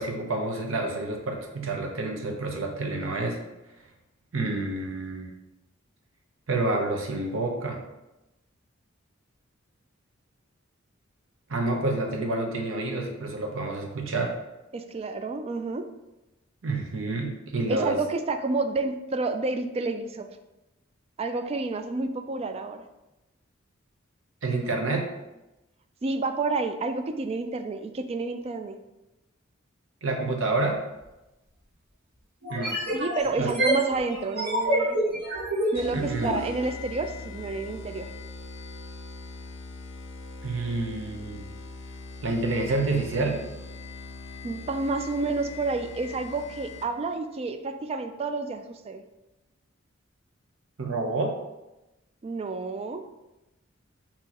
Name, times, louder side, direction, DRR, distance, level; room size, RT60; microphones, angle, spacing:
voice 1, 0.0-3.4 4.3-5.3 6.5-7.8 11.5-14.3 16.6-18.0 24.4-25.1 30.0-30.8 32.5-32.8 33.4-33.5 35.9-36.4 40.4-41.4 42.2-43.4 50.8-51.3, right 2 dB, 70° right, 1 dB, 0.8 m, -28 dB
voice 2, 14.7-15.8 17.7-20.3 21.2-22.8 26.0-28.8 32.9-35.0 35.7-38.1 44.4-49.0 52.2-53.0, right 3 dB, 30° right, 7 dB, 0.3 m, -30 dB
sound 1, 31.0-31.1 32.4-36.4, right 1 dB, 50° right, 1.6 m, -27 dB
sound 2, 35.8-47.1, left 3 dB, 65° left, 0.5 m, -41 dB
5.9 x 2.9 x 2.9 m, 0.98 s
head